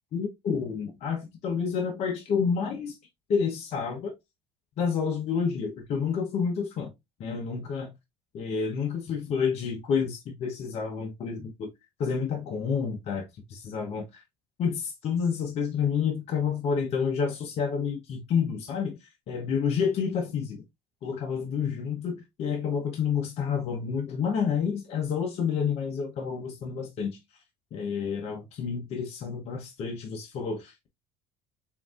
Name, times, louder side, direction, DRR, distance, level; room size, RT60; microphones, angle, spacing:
voice 1, 0.1-3.0 3.3-4.1 4.8-6.9 7.2-7.9 8.3-11.7 12.0-14.2 14.6-20.6 21.0-27.2 27.7-30.9, left 6 dB, 55° left, 1.0 m, -29 dB
7.0 x 2.7 x 2.4 m
supercardioid pair, 90°, 13 cm